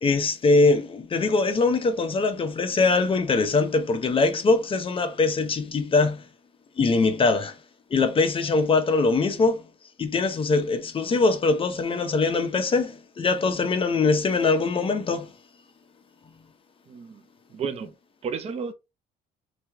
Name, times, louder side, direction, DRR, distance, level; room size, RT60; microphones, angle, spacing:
voice 1, 0.0-6.2 6.8-7.6 7.9-9.6 10.0-15.3, left 3 dB, 30° left, 0.8 m, -22 dB
voice 2, 16.9-17.2 17.5-17.9 18.2-18.7, right 6 dB, 40° right, 0.6 m, -32 dB
3.2 x 2.8 x 3.5 m
cardioid pair, 110°, 17 cm